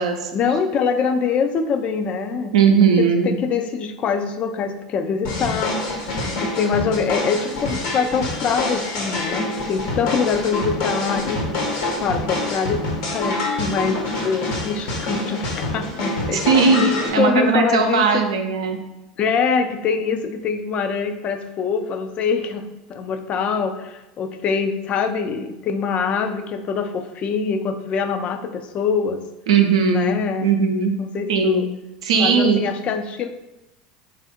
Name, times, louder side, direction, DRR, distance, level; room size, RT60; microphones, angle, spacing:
voice 1, 0.3-2.5 3.0-5.8 6.4-11.6 12.0-12.8 13.1-16.8 17.2-18.2 19.2-22.6 22.9-29.2 29.9-30.5 31.0-31.7 32.2-33.3, left 6 dB, 45° left, 8 dB, 0.4 m, -24 dB
voice 2, 2.5-3.3 16.3-18.8 29.5-30.1 30.4-30.9 31.3-31.6 32.0-32.6, right 5 dB, 80° right, 3 dB, 0.5 m, -18 dB
sound 1, 5.2-17.1, left 2 dB, 70° left, 1.2 m, -26 dB
3.5 x 2.5 x 4.1 m, 0.97 s
hypercardioid pair, 85°, 3 cm